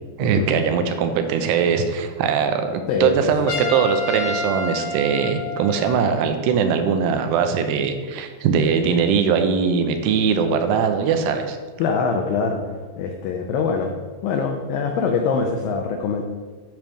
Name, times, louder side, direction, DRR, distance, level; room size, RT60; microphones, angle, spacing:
voice 1, 0.2-11.6, right 6 dB, 85° right, 7 dB, 2.8 m, -21 dB
voice 2, 2.9-3.3 11.8-12.6 13.0-13.9 14.2-16.2, left 5 dB, 85° left, 3 dB, 2.0 m, -23 dB
Trumpet, 3.5-6.2, left 3 dB, 60° left, 2.3 m, -29 dB
10.5 x 3.5 x 6.3 m, 1.4 s
omnidirectional pair, 4.8 m